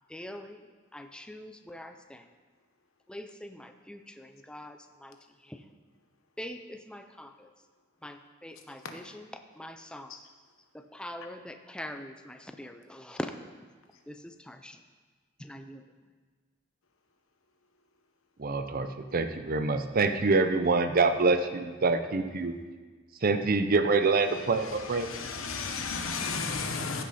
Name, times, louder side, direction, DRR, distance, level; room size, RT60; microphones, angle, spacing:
voice 1, 0.1-0.7 0.9-2.3 3.1-5.2 5.4-5.6 6.4-7.5 8.0-10.2 10.7-13.3 14.1-14.8 15.4-15.8, left 1 dB, 5° left, 7 dB, 0.4 m, -43 dB
voice 2, 18.4-22.5 23.2-25.1, right 3 dB, 45° right, 9 dB, 0.6 m, -26 dB
voice 3, 24.8-27.0, left 4 dB, 85° left, 5 dB, 1.1 m, -33 dB
15.0 x 6.2 x 4.2 m, 1.5 s
head